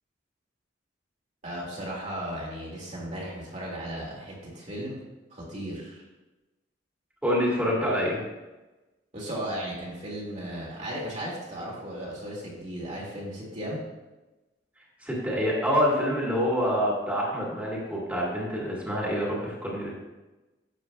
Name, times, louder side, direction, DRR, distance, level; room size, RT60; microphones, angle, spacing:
voice 1, 1.4-5.0 5.3-6.0 9.1-13.8, right 1 dB, 40° right, -4 dB, 2.0 m, -36 dB
voice 2, 7.2-8.2 15.0-19.9, equal, 5° right, -6 dB, 2.0 m, -26 dB
10.5 x 7.3 x 2.3 m, 1.1 s
head